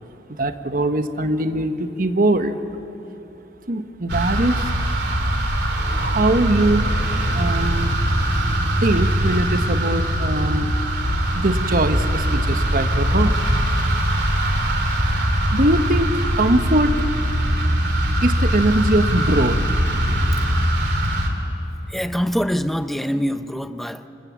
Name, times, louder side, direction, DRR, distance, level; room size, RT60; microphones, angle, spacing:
voice 1, 0.3-2.6 3.7-4.7 5.9-6.9 7.3-8.0 8.8-10.7 11.3-13.4 15.5-17.0 18.2-19.6, right 1 dB, 50° right, 8 dB, 1.2 m, -21 dB
sound 1, 4.1-21.3, equal, 70° right, 3.0 m, -21 dB
sound 2, 5.7-11.5, equal, 25° right, 6.7 m, -41 dB
voice 2, 21.9-24.1, equal, ahead, 9 dB, 0.7 m, -24 dB
27.5 x 25.5 x 7.3 m, 3.0 s
head